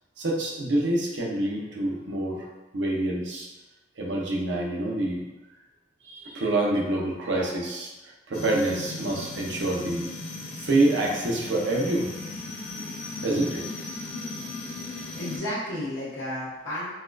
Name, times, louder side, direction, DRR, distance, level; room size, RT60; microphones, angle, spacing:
voice 1, 0.2-2.5 2.7-3.5 4.0-5.2 6.1-10.1 10.6-12.1 13.2-13.6, right 2 dB, 80° right, -2 dB, 0.7 m, -26 dB
sound 1, 8.3-15.4, left 3 dB, 60° left, 0.6 m, -37 dB
voice 2, 14.9-16.9, left 1 dB, 80° left, -8 dB, 1.1 m, -33 dB
4.1 x 2.5 x 2.3 m, 1.1 s
head